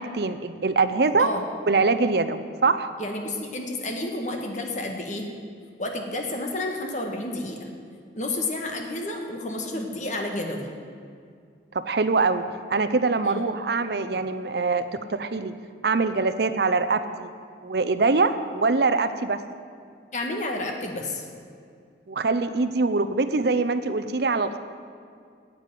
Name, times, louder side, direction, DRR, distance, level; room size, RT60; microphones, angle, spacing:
voice 1, 0.0-1.3 1.7-2.9 11.7-12.4 12.7-15.5 15.8-17.3 17.6-19.4 22.1-24.6, right 3 dB, 60° right, 11 dB, 0.6 m, -23 dB
voice 2, 3.0-5.3 5.8-7.7 8.1-10.7 13.2-13.4 20.1-21.2, left 2 dB, 40° left, 3 dB, 1.5 m, -30 dB
9.9 x 8.4 x 9.3 m, 2.3 s
head